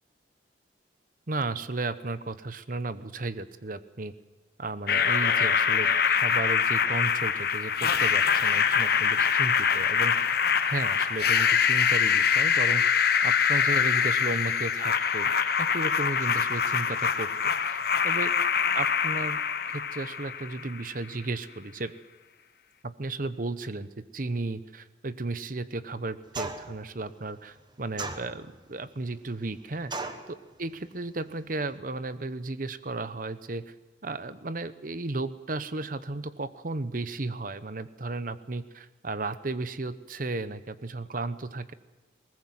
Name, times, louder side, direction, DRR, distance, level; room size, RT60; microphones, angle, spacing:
voice 1, 1.3-4.1 4.6-10.4 10.6-13.0 13.2-15.3 15.6-17.8 18.0-18.3 18.7-19.4 19.7-21.9 22.8-33.7 34.0-41.7, right 2 dB, 45° right, 13 dB, 0.9 m, -34 dB
sound 1, 4.9-20.8, left 7 dB, 55° left, 1.1 m, -24 dB
sound 2, 26.3-26.8 28.0-28.7 29.9-30.3, right 3 dB, 25° right, 1.2 m, -35 dB
20.5 x 18.5 x 7.8 m, 1.2 s
head